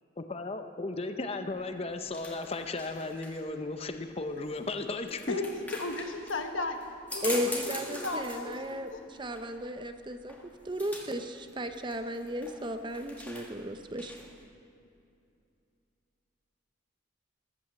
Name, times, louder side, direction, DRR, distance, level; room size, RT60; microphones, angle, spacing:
voice 1, 0.2-5.4, left 2 dB, 30° left, 7 dB, 0.6 m, -35 dB
sound 1, 1.5-14.4, left 1 dB, 10° left, 1.5 m, -44 dB
voice 2, 5.3-9.0, left 2 dB, 90° left, 5 dB, 1.4 m, -36 dB
voice 3, 7.2-10.3 10.6-14.1, equal, 25° right, 8 dB, 0.7 m, -35 dB
14.0 x 12.0 x 7.5 m, 2.6 s
head